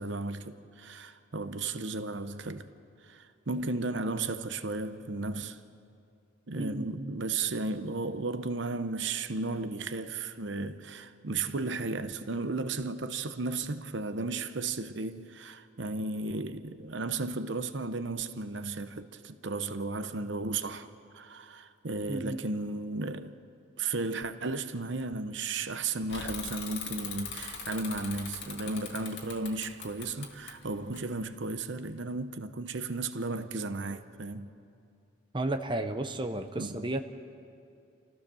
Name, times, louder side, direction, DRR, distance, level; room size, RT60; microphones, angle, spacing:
voice 1, 0.0-2.7 3.0-5.6 6.5-23.4 23.8-34.5 36.6-36.9, right 3 dB, 70° right, 0.8 m, -34 dB
voice 2, 6.6-7.1 22.1-22.4 35.3-37.0, right 1 dB, 25° right, 0.8 m, -33 dB
Bicycle / Mechanisms, 26.1-31.6, left 6 dB, 65° left, 2.2 m, -41 dB
28.0 x 15.0 x 7.0 m
head